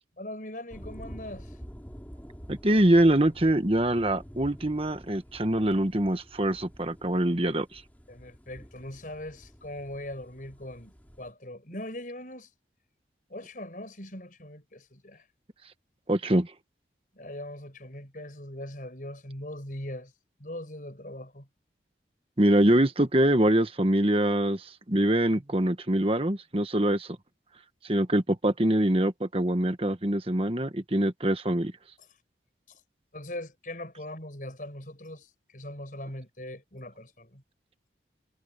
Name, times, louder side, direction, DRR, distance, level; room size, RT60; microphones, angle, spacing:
voice 1, 0.2-1.6 8.1-12.5 13.3-15.2 17.1-20.1 20.4-21.5 32.0-32.1 32.7-32.8 33.1-37.4, left 1 dB, 50° left, 6.1 m, -41 dB
sound 1, 0.7-11.3, equal, 10° left, 7.2 m, -48 dB
voice 2, 2.5-7.8 16.1-16.5 22.4-27.1 27.9-31.7, right 1 dB, 30° right, 1.4 m, -24 dB
head